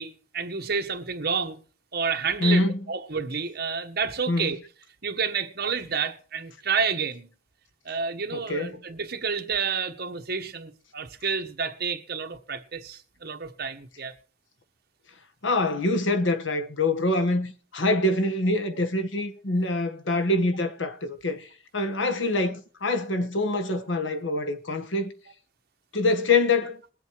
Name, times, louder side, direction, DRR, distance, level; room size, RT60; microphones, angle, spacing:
voice 1, 0.0-1.6 1.9-4.6 5.0-7.3 7.8-14.1, right 5 dB, 55° right, 1.5 m, -30 dB
voice 2, 2.4-2.8 4.3-4.5 8.3-8.8 15.4-21.5 21.7-25.1 25.9-26.8, left 2 dB, 80° left, 1.4 m, -25 dB
21.0 x 8.1 x 4.6 m
head